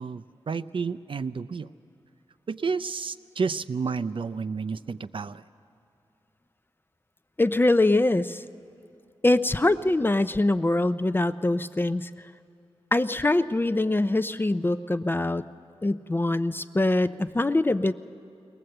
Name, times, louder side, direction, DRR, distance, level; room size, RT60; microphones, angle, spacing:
voice 1, 0.0-1.7 2.5-5.4, right 5 dB, 55° right, 13 dB, 0.5 m, -31 dB
voice 2, 7.4-8.4 9.2-12.1 12.9-15.4 15.8-17.9, left 2 dB, 20° left, 12 dB, 0.4 m, -23 dB
21.5 x 19.0 x 7.8 m, 2.5 s
wide cardioid pair, 105°, 10 cm